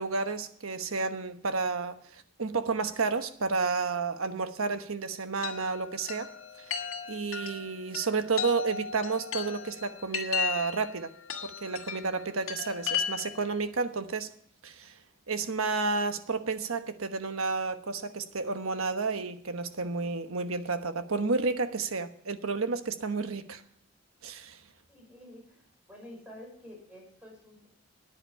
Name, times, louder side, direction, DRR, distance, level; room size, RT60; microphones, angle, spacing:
voice 1, 0.0-6.3 6.6-6.7 7.1-11.1 11.4-14.3 14.6-14.9 15.3-23.6 24.2-24.6, right 4 dB, 90° right, 9 dB, 1.1 m, -31 dB
Chime, 5.4-13.5, left 7 dB, 80° left, 1.9 m, -36 dB
voice 2, 24.9-27.7, left 1 dB, 5° right, -1 dB, 5.6 m, -49 dB
13.5 x 9.9 x 5.5 m, 0.65 s
head